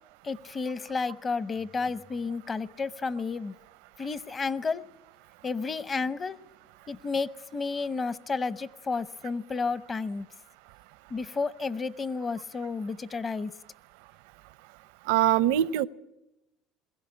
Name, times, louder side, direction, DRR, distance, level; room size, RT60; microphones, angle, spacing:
voice 1, 0.2-3.5 4.0-4.8 5.4-6.4 6.9-10.3 11.1-13.5, left 4 dB, 30° left, 16 dB, 0.8 m, -31 dB
voice 2, 15.1-15.9, right 13 dB, 85° right, 18 dB, 0.6 m, -22 dB
22.0 x 15.5 x 8.7 m, 0.94 s
supercardioid pair, 100°, 0 cm